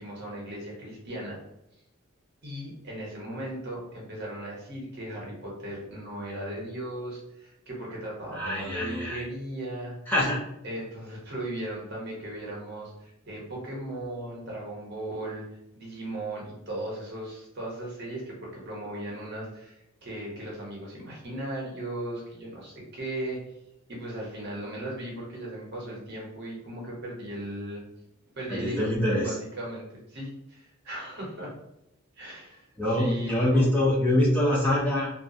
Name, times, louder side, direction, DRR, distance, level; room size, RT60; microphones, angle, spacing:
voice 1, 0.0-1.4 2.4-10.0 10.6-15.4 15.7-23.4 23.9-27.8 28.3-28.9 29.2-31.5 32.2-33.9, right 1 dB, 50° right, -3 dB, 0.8 m, -37 dB
voice 2, 8.3-9.2 10.1-10.4 28.5-29.4 32.8-35.1, left 1 dB, 10° left, -6 dB, 0.4 m, -24 dB
2.3 x 2.1 x 2.6 m, 0.85 s
head